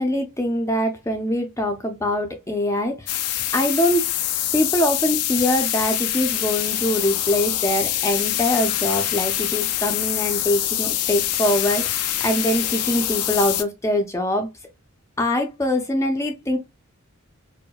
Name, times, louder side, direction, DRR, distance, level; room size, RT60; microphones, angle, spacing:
voice 1, 0.0-3.2 3.5-4.0 4.5-14.5 15.2-16.6, left 1 dB, 15° left, 0.5 m, -23 dB
sound 1, 3.1-13.6, left 12 dB, 90° left, 0.5 m, -25 dB
4.5 x 2.1 x 2.3 m
head